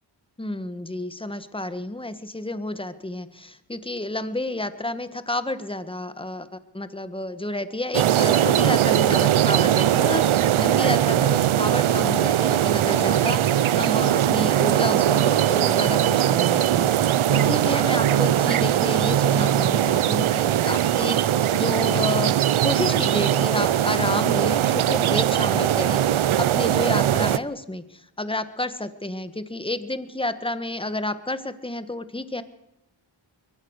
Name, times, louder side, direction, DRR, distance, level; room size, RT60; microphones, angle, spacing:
voice 1, 0.4-22.3 22.6-32.4, left 2 dB, 10° left, 11 dB, 1.6 m, -30 dB
sound 1, 7.9-27.4, right 11 dB, 85° right, 0.8 m, -20 dB
23.0 x 18.0 x 6.5 m, 0.86 s
cardioid pair, 70°, 48 cm